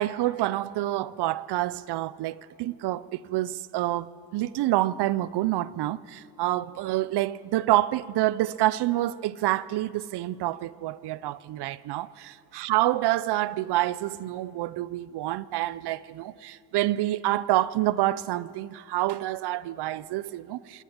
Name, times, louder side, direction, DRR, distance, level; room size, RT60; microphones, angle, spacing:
voice 1, 0.0-20.8, right 15 dB, 80° right, 0.6 m, -27 dB
27.0 x 11.5 x 8.7 m
cardioid pair, 155°, 39 cm